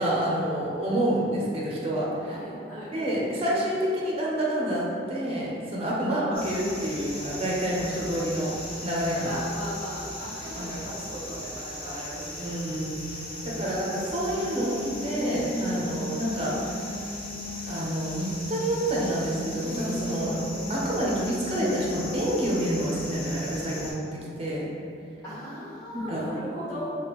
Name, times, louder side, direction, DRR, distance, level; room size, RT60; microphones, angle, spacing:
voice 1, 0.0-2.4 2.9-8.5 8.8-9.3 10.6-10.8 12.4-16.5 17.7-20.3 20.7-24.6 25.9-26.2, equal, 35° right, -5 dB, 0.5 m, -28 dB
voice 2, 2.3-2.9 3.9-4.1 6.0-6.2 9.2-12.5 13.6-13.9 14.5-14.6 20.2-20.4 25.2-27.0, equal, 10° left, -18 dB, 1.3 m, -38 dB
sound 1, 6.3-23.9, left 1 dB, 30° left, 0.8 m, -39 dB
Singing, 12.4-17.8 18.4-22.3, left 1 dB, 50° left, 1.1 m, -38 dB
3.4 x 2.2 x 2.9 m, 2.5 s
head